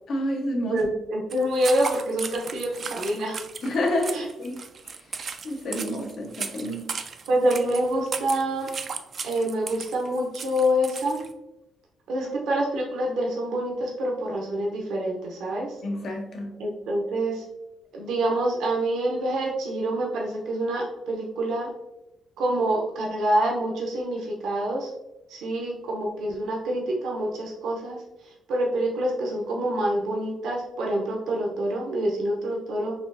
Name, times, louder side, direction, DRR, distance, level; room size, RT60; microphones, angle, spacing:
voice 1, 0.1-0.8 3.6-4.6 4.8-5.0 5.4-6.9 15.8-16.6, left 1 dB, 60° left, 2 dB, 0.8 m, -29 dB
voice 2, 0.7-3.4 4.1-4.2 7.3-8.7 9.2-11.2 12.1-15.7 16.6-17.4 17.9-21.7 22.4-24.9 25.3-28.0 28.5-32.9, right 1 dB, 80° right, -2 dB, 0.7 m, -26 dB
sound 1, 1.3-11.3, right 5 dB, 50° right, 0.3 m, -36 dB
4.3 x 2.6 x 2.6 m, 0.94 s
cardioid pair, 90°, 0 cm